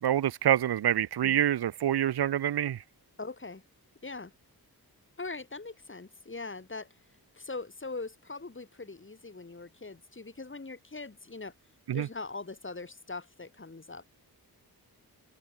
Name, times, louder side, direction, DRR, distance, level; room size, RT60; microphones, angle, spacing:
voice 1, 0.0-2.8 11.9-12.1, right 11 dB, 85° right, 0.6 m, -26 dB
voice 2, 3.2-3.6 4.0-4.3 5.2-6.9 7.3-11.5 11.9-14.1, left 3 dB, 30° left, 4.3 m, -41 dB
wide cardioid pair, 115°, 38 cm